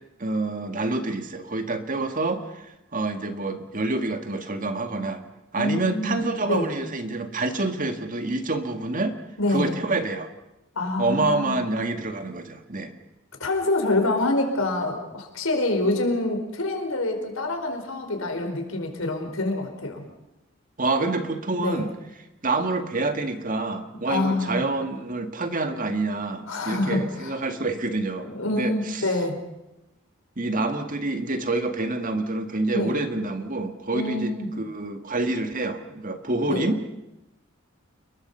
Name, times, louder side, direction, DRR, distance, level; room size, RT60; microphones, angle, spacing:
voice 1, 0.2-2.7 2.9-5.2 5.5-9.2 9.5-10.3 11.0-13.0 20.8-21.9 22.4-29.2 30.4-36.8, right 2 dB, 40° right, 7 dB, 1.9 m, -27 dB
voice 2, 5.5-6.7 9.4-9.7 10.7-11.6 13.4-20.0 21.6-21.8 24.1-24.6 26.5-27.0 28.2-29.3 32.7-33.0 33.9-34.5 36.4-36.7, left 2 dB, 90° left, 4 dB, 4.8 m, -26 dB
29.5 x 22.0 x 5.6 m, 0.93 s
head